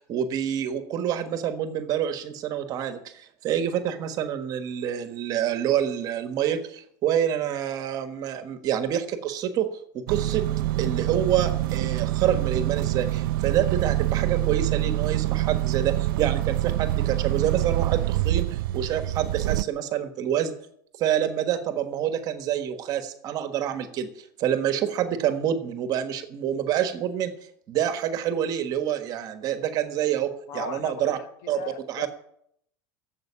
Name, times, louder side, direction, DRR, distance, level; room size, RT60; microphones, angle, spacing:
voice 1, 0.0-9.7 9.9-10.4 10.8-20.5 21.0-27.3 27.7-31.2 31.5-31.6 31.9-32.1, right 10 dB, 35° right, 9 dB, 1.5 m, -27 dB
sound 1, 10.1-19.6, right 15 dB, 85° right, 0.4 m, -25 dB
voice 2, 30.5-32.1, left 6 dB, 55° left, 10 dB, 1.3 m, -37 dB
12.0 x 7.8 x 9.9 m, 0.70 s
supercardioid pair, 160°, 11 cm